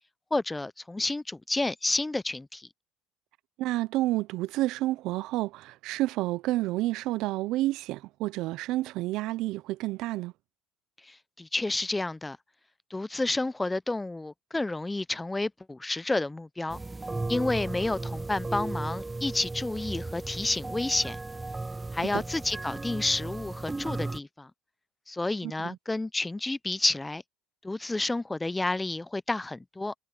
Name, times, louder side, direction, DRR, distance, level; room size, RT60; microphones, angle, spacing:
voice 1, 0.3-2.7 11.1-12.4 12.9-16.8 17.3-21.2 21.9-24.5 25.1-27.2 27.6-29.9, left 2 dB, 15° left, 0.8 m, -30 dB
voice 2, 3.6-10.3 22.1-22.2 25.4-25.8, right 17 dB, 65° right, 0.8 m, -30 dB
sound 1, 16.7-24.2, right 2 dB, 15° right, 0.4 m, -35 dB
hypercardioid pair, 75°, 0 cm